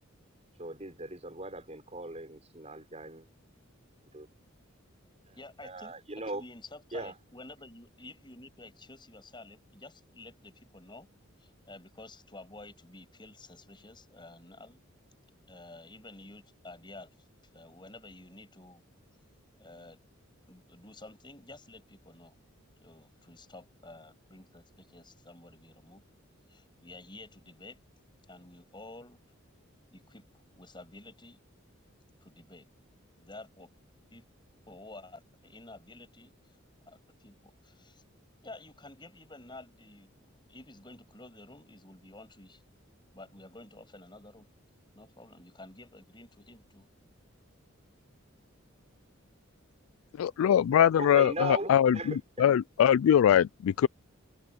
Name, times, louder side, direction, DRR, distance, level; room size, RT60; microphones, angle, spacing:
voice 1, 0.6-3.2 4.1-4.3 5.3-5.4 5.6-6.4 6.9-7.1 51.0-52.2, right 2 dB, 30° right, 6.2 m, -38 dB
voice 2, 5.4-11.1 11.4-14.8 15.5-17.1 17.5-18.8 19.6-20.0 20.5-22.3 22.8-26.0 26.5-27.8 28.3-29.2 29.9-30.2 30.5-31.4 32.2-32.7 33.2-33.7 34.1-34.3 34.7-36.3 36.9-38.0 38.4-42.6 43.1-44.5 45.0-46.9, left 2 dB, 20° left, 7.6 m, -50 dB
voice 3, 50.2-53.9, left 9 dB, 75° left, 0.3 m, -23 dB
head